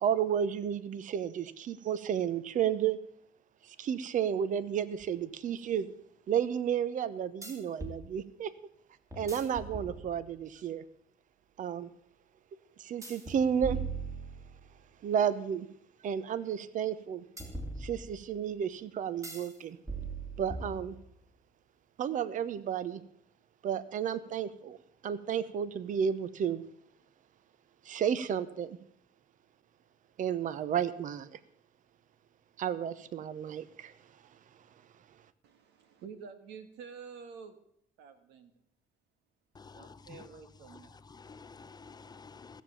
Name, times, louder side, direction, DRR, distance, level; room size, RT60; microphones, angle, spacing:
voice 1, 0.0-3.0 3.6-5.9 6.3-8.5 9.2-10.8 11.6-11.9 12.8-13.8 15.0-15.7 16.0-17.2 17.8-19.8 20.4-21.0 22.0-23.0 23.6-24.8 25.0-26.6 27.8-28.8 30.2-31.4 32.6-33.9, right 8 dB, 50° right, 0.8 m, -32 dB
sound 1, 5.0-5.1 7.4-8.0 9.1-10.4 13.0-14.7 17.4-18.4 19.2-19.5 19.9-21.2, right 3 dB, 20° right, 2.5 m, -40 dB
voice 2, 35.4-37.6 38.0-38.5 39.7-40.9, right 6 dB, 85° right, 1.5 m, -49 dB
voice 3, 39.5-42.6, left 4 dB, 25° left, 0.7 m, -51 dB
15.5 x 7.2 x 7.0 m
cardioid pair, 110°, 17 cm